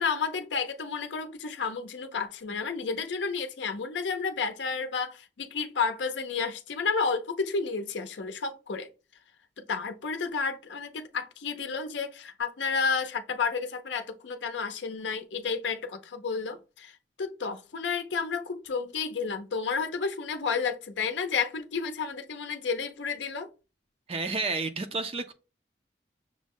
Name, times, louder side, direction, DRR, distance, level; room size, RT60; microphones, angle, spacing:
voice 1, 0.0-8.9 9.6-23.5, left 5 dB, 85° left, 0.5 m, -31 dB
voice 2, 24.1-25.3, right 3 dB, 30° right, 0.4 m, -30 dB
6.2 x 2.1 x 3.6 m
head